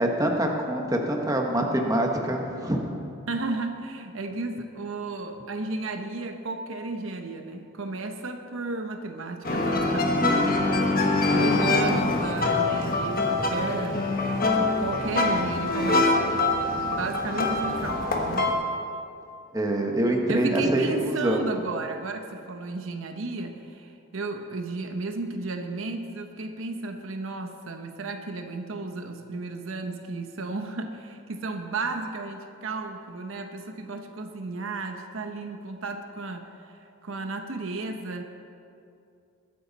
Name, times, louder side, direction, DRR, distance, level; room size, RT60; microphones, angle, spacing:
voice 1, 0.0-2.8 19.5-21.5, right 1 dB, 15° right, 1 dB, 1.2 m, -25 dB
voice 2, 3.3-10.7 11.1-14.0 14.5-16.3 16.8-18.6 20.3-38.2, right 3 dB, 65° right, 6 dB, 0.8 m, -33 dB
sound 1, 9.4-18.5, left 2 dB, 40° left, 1.2 m, -24 dB
21.5 x 9.4 x 4.1 m, 2.6 s
head